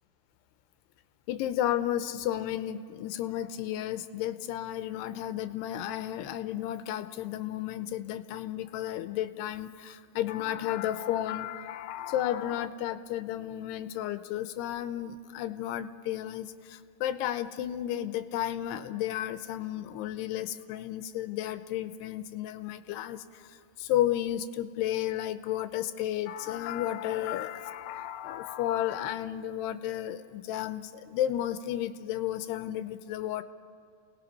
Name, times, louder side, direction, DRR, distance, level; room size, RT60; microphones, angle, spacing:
voice 1, 1.3-33.4, left 12 dB, 90° left, 11 dB, 2.8 m, -33 dB
29.5 x 18.5 x 5.8 m, 2.3 s
omnidirectional pair, 4.7 m